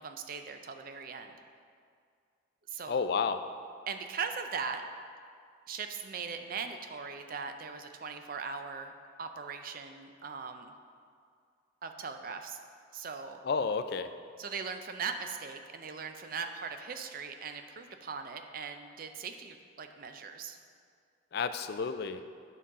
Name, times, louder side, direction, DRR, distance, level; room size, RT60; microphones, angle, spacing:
voice 1, 0.0-1.4 2.7-3.0 3.9-4.8 5.7-8.9 9.2-10.7 11.8-12.6 12.9-13.4 14.4-20.6, right 5 dB, 50° right, 6 dB, 0.5 m, -39 dB
voice 2, 2.9-3.4 13.4-14.1 21.3-22.2, left 5 dB, 55° left, 10 dB, 0.3 m, -31 dB
9.2 x 5.4 x 3.7 m, 2.2 s
head